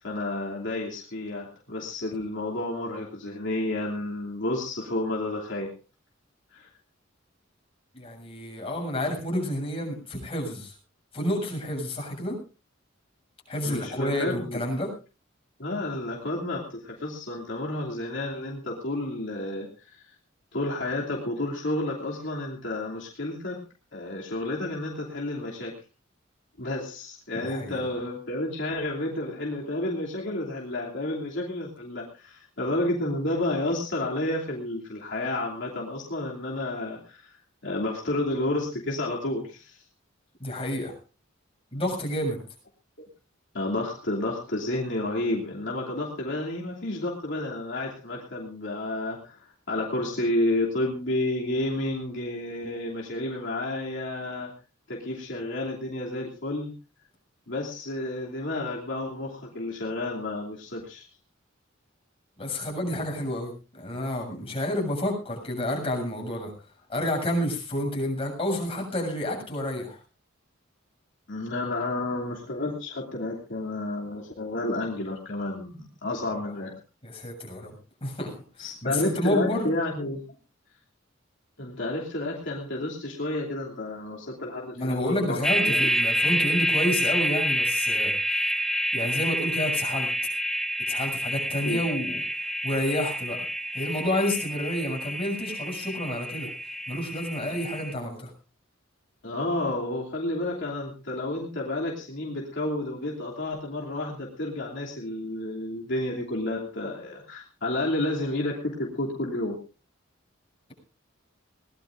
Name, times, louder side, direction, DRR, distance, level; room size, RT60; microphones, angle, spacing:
voice 1, 0.0-5.7 6.5-6.7 13.6-14.6 15.6-20.2 20.5-23.6 23.9-25.8 26.6-37.4 37.6-39.8 43.5-54.5 54.9-56.7 57.5-61.1 71.3-76.7 78.6-80.2 81.6-85.9 91.6-91.8 99.2-109.6, left 1 dB, 65° left, -3 dB, 2.9 m, -31 dB
voice 2, 7.9-10.7 11.1-12.4 13.5-14.9 27.4-27.8 40.4-40.9 41.7-42.4 62.4-66.5 66.9-70.0 76.3-76.4 77.0-77.8 78.0-79.7 84.8-88.1 88.9-90.1 90.9-92.2 92.6-93.5 93.7-96.5 96.9-98.3, left 1 dB, 30° left, 0 dB, 7.3 m, -29 dB
sound 1, 85.4-97.9, equal, ahead, 1.1 m, -28 dB
21.5 x 19.0 x 2.6 m, 0.33 s
head